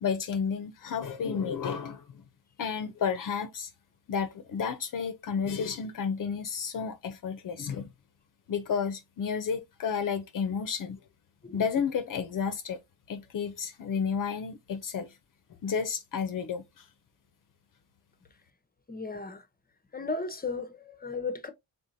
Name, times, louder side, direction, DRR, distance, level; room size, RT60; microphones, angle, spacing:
voice 1, 0.0-2.2 2.6-3.7 4.1-7.9 8.5-11.0 11.5-12.8 13.1-15.1 15.6-16.8, left 6 dB, 55° left, 0.7 m, -31 dB
voice 2, 18.9-19.4 19.9-21.5, left 3 dB, 25° left, 0.8 m, -35 dB
3.9 x 3.7 x 2.7 m
cardioid pair, 75°, 39 cm